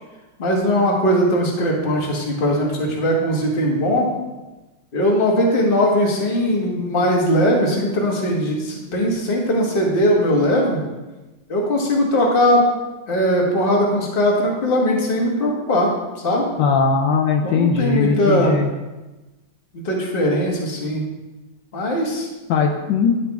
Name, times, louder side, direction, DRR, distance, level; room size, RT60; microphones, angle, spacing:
voice 1, 0.4-4.1 4.9-10.8 11.5-12.7 13.1-15.9 16.2-16.4 17.4-18.5 19.8-21.0 21.7-22.3, equal, 35° left, -1 dB, 1.2 m, -19 dB
voice 2, 16.6-18.7 22.5-23.2, left 5 dB, 75° left, 2 dB, 1.2 m, -19 dB
10.0 x 4.0 x 3.4 m, 1.1 s
omnidirectional pair, 2.0 m